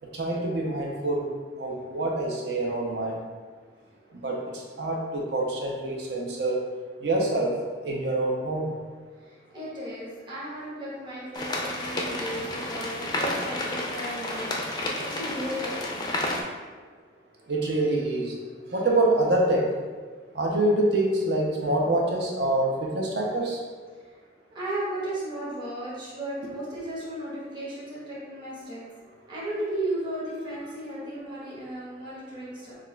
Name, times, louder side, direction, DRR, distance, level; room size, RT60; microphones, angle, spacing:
voice 1, 0.1-1.3 1.6-3.2 4.2-6.6 7.0-8.7 17.5-18.4 18.7-19.7 20.3-23.6, right 1 dB, 60° right, -1 dB, 0.7 m, -26 dB
voice 2, 9.2-16.1 24.5-28.8 29.3-32.8, right 1 dB, 25° right, -8 dB, 1.1 m, -35 dB
sound 1, 11.3-16.4, left 1 dB, 20° left, 0.4 m, -31 dB
6.2 x 2.4 x 2.3 m, 1.5 s
head